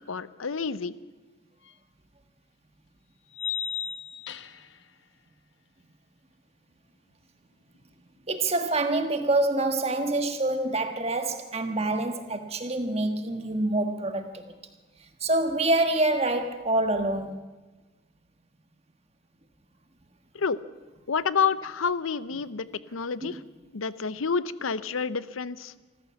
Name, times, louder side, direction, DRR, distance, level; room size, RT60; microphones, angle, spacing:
voice 1, 0.1-0.9 20.3-20.6 21.1-22.7 22.9-23.4 23.7-25.7, left 5 dB, 85° left, 0.7 m, -28 dB
sound 1, 1.7-1.8 3.3-4.8, left 8 dB, 60° left, 0.9 m, -34 dB
voice 2, 8.3-14.5 15.2-17.4 23.2-23.3, right 2 dB, 30° right, 1.5 m, -26 dB
26.0 x 14.5 x 7.2 m
head